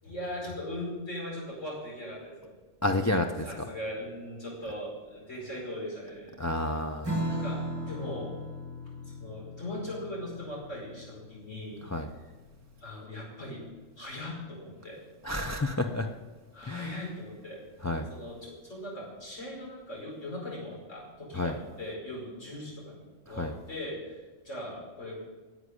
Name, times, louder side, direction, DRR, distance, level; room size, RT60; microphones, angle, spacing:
voice 1, 0.0-2.6 3.4-6.8 7.3-8.3 9.0-11.8 12.2-12.3 12.8-13.7 14.0-15.0 16.5-25.1, left 1 dB, 70° left, -4 dB, 5.4 m, -40 dB
voice 2, 2.8-3.5 6.4-7.1 11.9-12.1 15.2-16.1 16.7-16.9 17.8-18.1 21.3-21.5 23.4-23.5, left 2 dB, 20° left, 3 dB, 0.5 m, -29 dB
Strum, 7.0-13.9, equal, 20° right, 1.9 m, -38 dB
11.5 x 7.9 x 9.6 m, 1.2 s
omnidirectional pair, 1.3 m